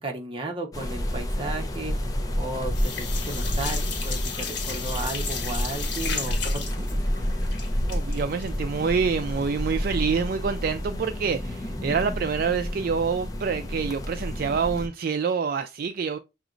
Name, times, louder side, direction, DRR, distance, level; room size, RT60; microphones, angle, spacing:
voice 1, 0.0-2.0 2.4-7.0, right 2 dB, 30° right, 0.9 m, -34 dB
sound 1, 0.7-14.9, equal, 20° left, 0.7 m, -30 dB
sound 2, 2.0-2.4 2.7-9.6 9.9-10.0 10.3-10.4, left 6 dB, 85° left, 1.3 m, -35 dB
voice 2, 7.9-16.2, right 5 dB, 50° right, 0.3 m, -27 dB
6.1 x 2.9 x 2.5 m
head